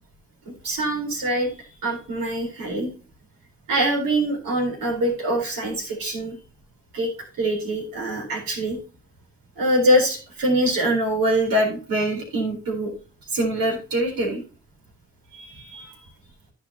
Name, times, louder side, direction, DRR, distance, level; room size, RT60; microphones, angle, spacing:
voice 1, 0.6-1.5 1.8-2.9 3.7-6.4 6.9-7.1 7.4-8.8 9.6-12.9 13.3-14.4 15.3-15.9, right 1 dB, 60° right, 0 dB, 4.1 m, -24 dB
14.5 x 5.3 x 2.9 m, 0.37 s
hypercardioid pair, 40°, 39 cm